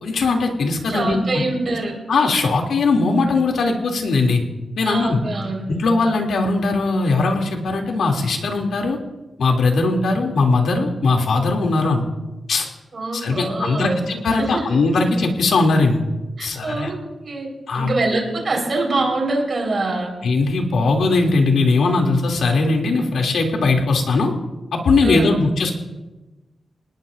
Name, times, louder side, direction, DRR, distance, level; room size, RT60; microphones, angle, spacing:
voice 1, 0.0-1.2 2.1-4.4 4.7-5.2 5.7-9.0 9.4-12.0 12.5-12.7 13.1-16.0 16.4-16.9 17.7-17.9 20.2-24.3 24.7-25.7, left 3 dB, 90° left, 1 dB, 3.0 m, -19 dB
voice 2, 0.9-2.0 4.8-5.6 12.9-14.0 14.4-14.6 16.4-16.9 17.2-17.5 17.7-20.1 25.0-25.3, right 2 dB, 35° right, 0 dB, 4.8 m, -24 dB
28.0 x 19.0 x 2.7 m, 1.1 s
wide cardioid pair, 180°, 0 cm